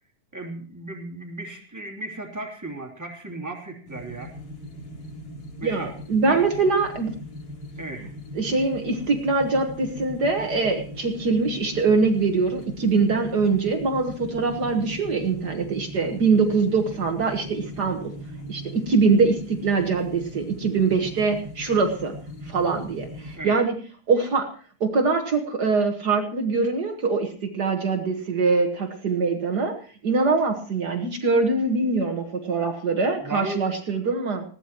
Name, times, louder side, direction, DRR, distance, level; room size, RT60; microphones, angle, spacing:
voice 1, 0.3-4.3 5.6-5.9 6.3-6.7 7.8-8.1 23.3-23.6 33.2-33.7, right 2 dB, 5° right, 0 dB, 2.4 m, -35 dB
sound 1, 3.9-23.4, equal, 50° left, 4.7 m, -39 dB
voice 2, 5.6-7.1 8.3-18.1 18.5-22.2 22.4-23.7 24.1-24.5 24.8-29.7 30.0-34.4, right 4 dB, 80° right, 3 dB, 0.9 m, -23 dB
20.0 x 16.5 x 3.0 m, 0.42 s
omnidirectional pair, 4.1 m